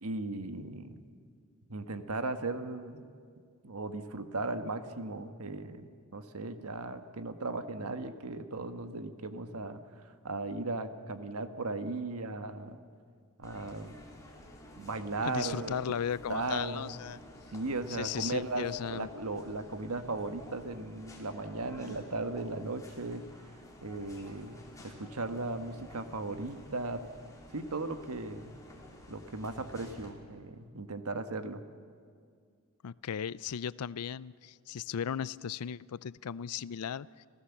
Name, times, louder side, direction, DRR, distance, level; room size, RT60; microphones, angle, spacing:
voice 1, 0.0-1.0 1.7-3.0 3.6-9.8 10.0-12.8 13.4-14.0 14.8-15.8 16.3-16.9 17.5-23.2 23.8-27.0 27.5-28.6 29.1-31.6, right 2 dB, 75° right, 9 dB, 1.3 m, -37 dB
sound 1, 13.4-30.1, left 1 dB, 15° left, 3.5 m, -52 dB
voice 2, 15.2-17.2 17.9-19.1 32.8-37.1, left 8 dB, 80° left, 20 dB, 0.5 m, -36 dB
28.5 x 16.0 x 7.1 m, 2.1 s
head